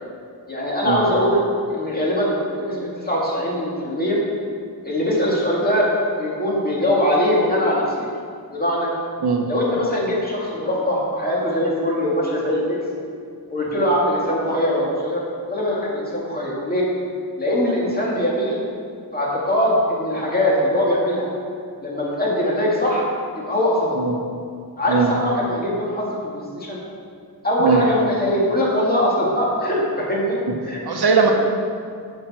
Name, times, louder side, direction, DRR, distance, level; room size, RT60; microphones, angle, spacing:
voice 1, 0.5-1.4 1.7-4.2 4.8-5.9 6.2-8.1 8.5-8.9 9.5-12.8 13.5-16.9 17.4-18.6 19.1-21.3 21.8-23.0 23.4-24.0 24.8-26.8 27.4-30.8 31.2-31.3, left 1 dB, 25° left, -5 dB, 2.2 m, -22 dB
voice 2, 30.8-31.3, right 5 dB, 80° right, 2 dB, 1.1 m, -19 dB
7.5 x 6.0 x 6.0 m, 2.2 s
wide cardioid pair, 105°, 38 cm